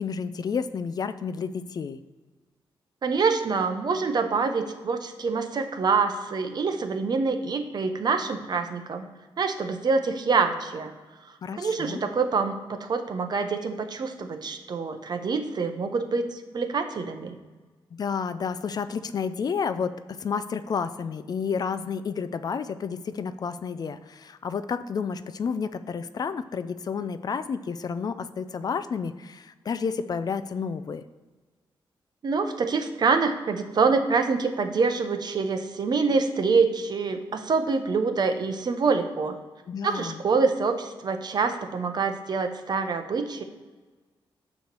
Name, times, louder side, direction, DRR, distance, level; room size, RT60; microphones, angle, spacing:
voice 1, 0.0-2.0 11.4-12.0 17.9-31.0 39.7-40.2, left 6 dB, 45° left, 12 dB, 0.3 m, -31 dB
voice 2, 3.0-9.1 9.4-10.9 11.6-17.4 32.2-39.4 39.8-43.4, right 4 dB, 50° right, 6 dB, 0.8 m, -26 dB
9.3 x 3.1 x 6.7 m, 1.3 s
wide cardioid pair, 135°, 9 cm